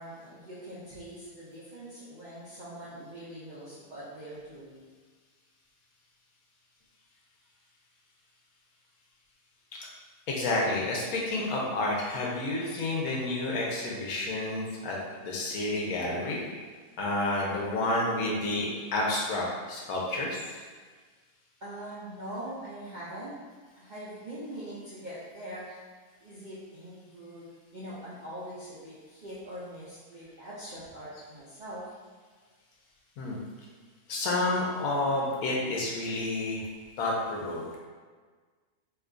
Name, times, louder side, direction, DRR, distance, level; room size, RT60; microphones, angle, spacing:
voice 1, 0.0-4.9 21.6-23.3 23.8-25.7 26.2-31.8, right 1 dB, 60° right, -9 dB, 0.4 m, -42 dB
voice 2, 10.3-15.0 15.2-16.4 17.0-20.4 33.2-33.4 34.1-36.6 37.0-37.8, left 2 dB, 75° left, -3 dB, 1.1 m, -30 dB
3.0 x 2.3 x 3.6 m, 1.5 s
omnidirectional pair, 1.6 m